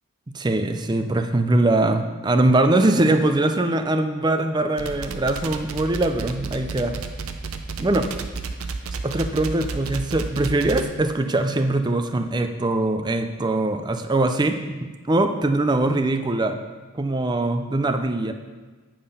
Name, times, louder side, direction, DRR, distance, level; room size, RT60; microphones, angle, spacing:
voice 1, 0.3-6.9 7.8-8.1 9.0-14.6 15.1-16.6 16.9-18.3, right 2 dB, 20° right, 7 dB, 0.4 m, -22 dB
sound 1, 4.8-10.8, right 4 dB, 75° right, 0.6 m, -31 dB
8.7 x 5.4 x 5.5 m, 1.3 s
head